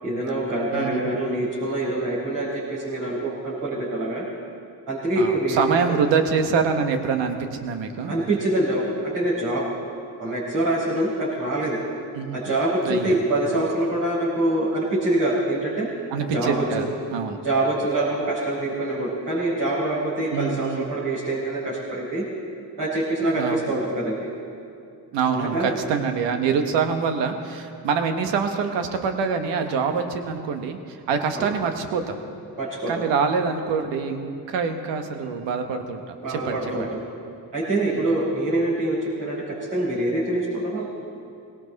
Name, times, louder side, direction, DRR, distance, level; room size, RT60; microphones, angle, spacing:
voice 1, 0.0-4.2 4.9-6.0 8.1-9.6 10.2-11.8 12.3-15.9 16.3-16.8 17.4-22.2 22.8-24.3 25.2-25.7 31.3-31.4 32.6-32.9 36.2-37.0 37.5-41.0, right 1 dB, 65° right, -10 dB, 4.7 m, -25 dB
voice 2, 0.7-1.2 5.2-8.1 12.1-12.5 12.8-13.2 16.1-17.4 20.3-20.9 23.3-23.7 25.1-32.2 32.9-36.9 37.9-38.1, right 6 dB, 90° right, 6 dB, 1.2 m, -25 dB
18.5 x 18.0 x 4.1 m, 2.4 s
supercardioid pair, 55°, 42 cm